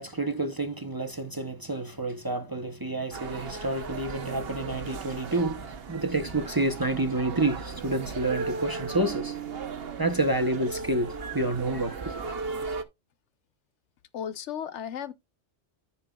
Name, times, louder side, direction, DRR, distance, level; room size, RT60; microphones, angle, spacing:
voice 1, 0.0-9.4 10.0-12.1, right 2 dB, 25° right, 0.6 m, -29 dB
sound 1, 3.1-12.8, right 4 dB, 60° right, 1.1 m, -36 dB
voice 2, 14.1-15.1, left 8 dB, 85° left, 1.1 m, -34 dB
14.0 x 5.6 x 2.3 m
omnidirectional pair, 1.2 m